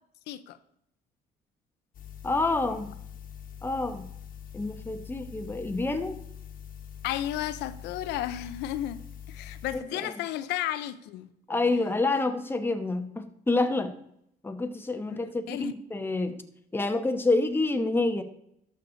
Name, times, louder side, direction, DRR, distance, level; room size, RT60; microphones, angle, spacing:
voice 1, 0.3-0.6 7.0-9.0 9.3-11.3 15.1-15.2 15.5-15.7, left 12 dB, 85° left, 0.6 m, -33 dB
sound 1, 1.9-9.8, left 8 dB, 55° left, 1.4 m, -44 dB
voice 2, 2.2-2.9 3.6-4.1 4.5-6.1 9.7-10.1 11.5-13.9 14.4-16.4 16.7-18.2, left 2 dB, 15° left, 1.0 m, -28 dB
12.5 x 6.7 x 4.0 m
cardioid pair, 110°, 17 cm